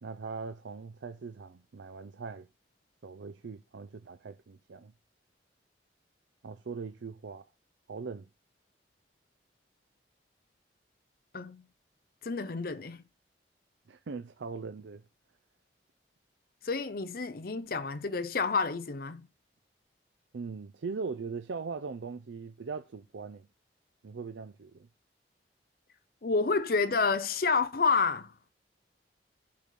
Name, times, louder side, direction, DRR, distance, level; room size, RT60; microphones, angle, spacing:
voice 1, 0.0-2.5 3.0-4.9 6.4-7.5 7.9-8.3 13.9-15.0 20.3-23.5 24.0-24.9, right 4 dB, 90° right, 0.5 m, -40 dB
voice 2, 12.2-13.0 16.6-19.3 26.2-28.5, left 4 dB, 55° left, 0.6 m, -29 dB
8.6 x 4.2 x 6.2 m
head